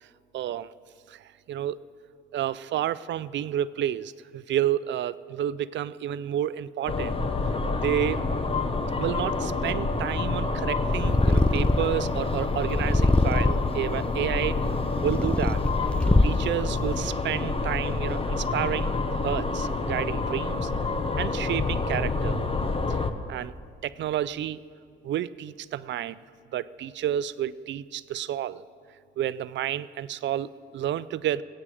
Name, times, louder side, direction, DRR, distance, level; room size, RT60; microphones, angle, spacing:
voice 1, 0.3-0.7 1.1-1.8 2.3-7.2 7.8-8.2 9.0-14.6 15.0-15.6 16.1-20.7 21.2-22.4 23.3-23.5 23.8-24.6 25.0-26.2 26.5-28.6 29.2-31.4, right 11 dB, 65° right, 17 dB, 0.5 m, -30 dB
sound 1, 6.9-23.1, left 3 dB, 30° left, 1.1 m, -28 dB
Purr, 10.9-12.0 12.7-13.8 14.5-16.6, left 2 dB, 5° left, 0.4 m, -23 dB
24.5 x 8.8 x 4.9 m, 2.4 s
cardioid pair, 90°, 20 cm